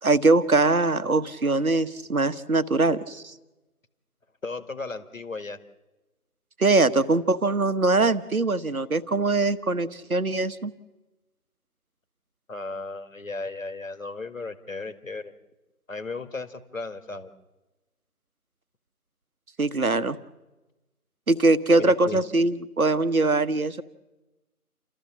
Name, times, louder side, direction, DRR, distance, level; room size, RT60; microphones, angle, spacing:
voice 1, 0.0-3.3 6.6-10.7 19.6-20.2 21.3-23.8, right 2 dB, 65° right, 13 dB, 1.3 m, -22 dB
voice 2, 4.4-5.6 12.5-15.3 15.9-17.3 21.8-22.2, left 3 dB, 60° left, 11 dB, 1.8 m, -35 dB
29.0 x 14.0 x 7.3 m, 1.1 s
figure-of-eight pair, 170°, 45 cm